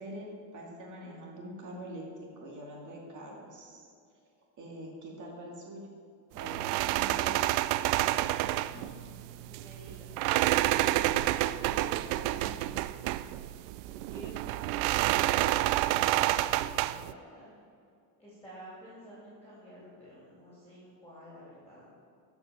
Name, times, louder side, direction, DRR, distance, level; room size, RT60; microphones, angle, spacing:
voice 1, 0.0-2.0 2.4-3.9 4.6-5.9 6.3-7.4, right 1 dB, 35° right, -2 dB, 2.2 m, -44 dB
sound 1, 6.4-17.1, right 15 dB, 80° right, 0.5 m, -29 dB
voice 2, 8.6-9.1 9.4-10.9 11.5-13.0 13.8-17.5 18.2-21.9, equal, 5° left, -8 dB, 2.9 m, -51 dB
13.0 x 5.5 x 6.1 m, 2.4 s
cardioid pair, 155°, 49 cm